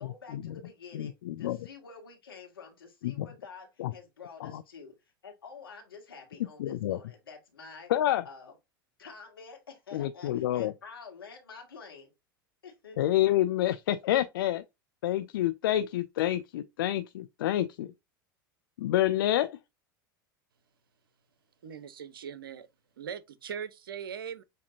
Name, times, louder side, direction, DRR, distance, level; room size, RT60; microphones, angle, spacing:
voice 1, 0.0-1.1 1.4-5.0 5.2-7.9 8.3-8.5 9.0-12.1 12.6-13.0, left 5 dB, 85° left, 1.8 m, -48 dB
voice 2, 0.9-1.6 3.0-3.3 3.8-3.9 4.4-4.6 6.6-7.0 7.9-8.2 9.9-10.7 13.0-14.6 15.0-17.9 18.8-19.6, left 13 dB, 70° left, 0.4 m, -28 dB
voice 3, 21.6-22.7 23.0-24.4, right 7 dB, 80° right, 0.6 m, -40 dB
7.6 x 2.7 x 2.5 m
hypercardioid pair, 85°, 12 cm